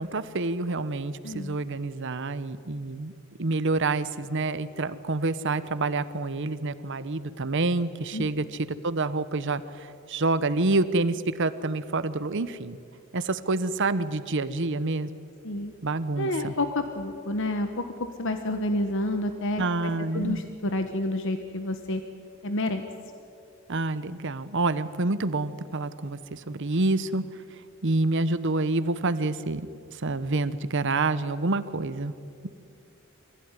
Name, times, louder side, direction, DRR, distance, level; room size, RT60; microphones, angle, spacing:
voice 1, 0.0-3.1 3.4-12.8 13.1-15.1 15.8-16.5 19.6-20.4 23.7-27.3 27.8-29.7 30.0-32.1, right 2 dB, 60° right, 13 dB, 1.0 m, -27 dB
voice 2, 1.2-1.6 8.1-8.3 15.4-15.7 16.2-22.0 22.4-22.8, left 1 dB, 65° left, 7 dB, 1.3 m, -29 dB
23.5 x 16.0 x 9.8 m, 2.5 s
head